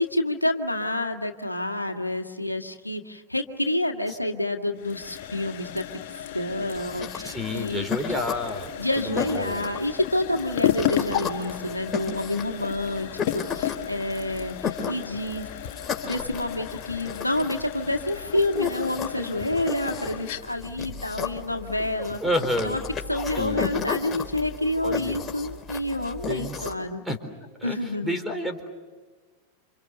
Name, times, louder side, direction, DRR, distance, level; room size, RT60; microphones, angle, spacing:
voice 1, 0.0-5.9 6.3-8.2 8.8-15.5 16.1-22.2 22.6-22.8 23.1-27.0 27.6-28.2, left 1 dB, 85° left, 4 dB, 1.8 m, -28 dB
sound 1, 4.7-22.5, left 11 dB, 50° left, 1.6 m, -34 dB
sound 2, 6.7-26.7, left 7 dB, 20° left, 3.8 m, -34 dB
voice 2, 7.2-8.7 9.0-9.6 22.2-22.8 23.4-23.7 24.8-25.2 26.3-26.7 27.1-27.2 27.6-27.8 28.0-28.7, left 1 dB, 5° right, 6 dB, 4.2 m, -29 dB
29.5 x 27.5 x 6.8 m, 1.4 s
figure-of-eight pair, 90°, 0 cm